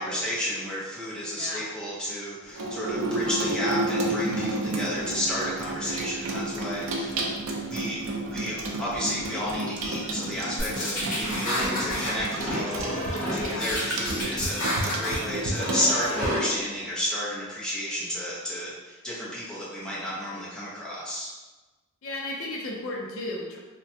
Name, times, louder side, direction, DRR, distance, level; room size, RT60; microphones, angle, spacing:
voice 1, 0.0-21.3, equal, 5° left, -9 dB, 0.7 m, -32 dB
voice 2, 1.3-1.6 5.8-6.1 11.5-11.7 13.2-13.7 22.0-23.6, left 2 dB, 75° left, -1 dB, 0.5 m, -34 dB
Water tap faucet / Sink (filling or washing), 2.5-16.3, right 1 dB, 65° right, 0.4 m, -31 dB
sound 1, 10.6-12.1 12.4-13.3 13.6-15.2 15.6-16.4, equal, 40° left, 1.1 m, -30 dB
3.2 x 2.1 x 2.7 m, 1.2 s
head